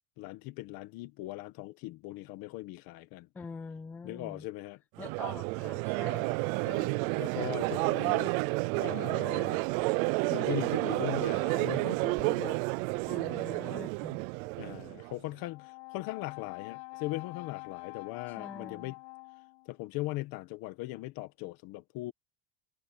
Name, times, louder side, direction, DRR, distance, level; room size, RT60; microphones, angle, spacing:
voice 1, 0.2-3.3 4.0-4.8 6.7-8.5 8.8-9.6 10.3-12.6 14.6-19.0 19.7-22.1, left 18 dB, 50° left, 1.5 m, -39 dB
voice 2, 3.3-4.5 5.0-6.5 13.1-14.2 18.4-19.0, left 5 dB, 5° left, 0.3 m, -45 dB
Crowd, 5.0-15.1, right 27 dB, 60° right, 0.6 m, -31 dB
Brass instrument, 15.4-19.8, left 40 dB or more, 65° left, 6.0 m, -46 dB
cardioid pair, 170°, 47 cm